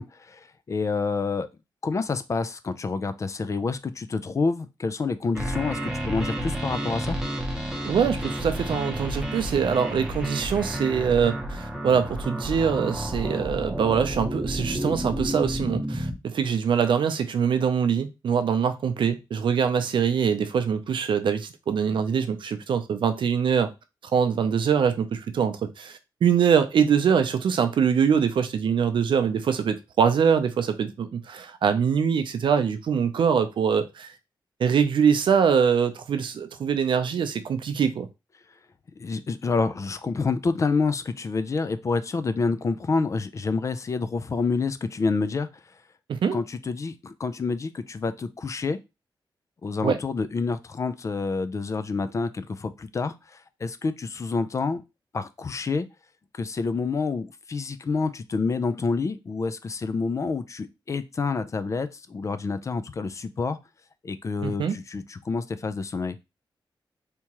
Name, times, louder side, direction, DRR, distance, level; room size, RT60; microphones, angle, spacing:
voice 1, 0.0-1.5 1.8-7.2 39.0-45.5 46.3-48.8 49.6-54.8 55.1-55.9 56.3-63.6 64.0-66.2, left 4 dB, 35° left, 0.4 m, -28 dB
sound 1, 5.3-16.1, equal, 10° right, 0.8 m, -31 dB
voice 2, 7.8-23.7 24.1-34.1 34.6-38.1 46.1-46.4 49.8-50.0 64.4-64.8, right 7 dB, 75° right, 0.5 m, -23 dB
3.4 x 2.9 x 2.9 m
wide cardioid pair, 125°, 8 cm